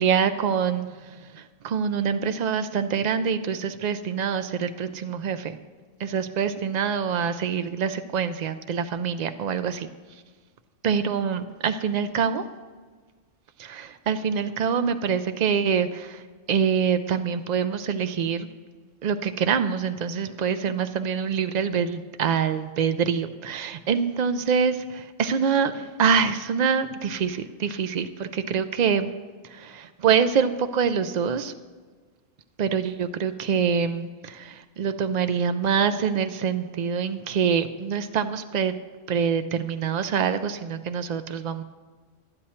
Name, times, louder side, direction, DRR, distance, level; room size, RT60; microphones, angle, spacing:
voice 1, 0.0-5.6 6.0-9.9 10.8-12.4 13.6-16.2 16.5-18.5 19.0-24.7 25.2-29.1 29.5-31.5 32.6-38.7 39.1-41.6, right 7 dB, 90° right, 10 dB, 0.3 m, -25 dB
11.5 x 9.9 x 4.3 m, 1.4 s
omnidirectional pair, 1.3 m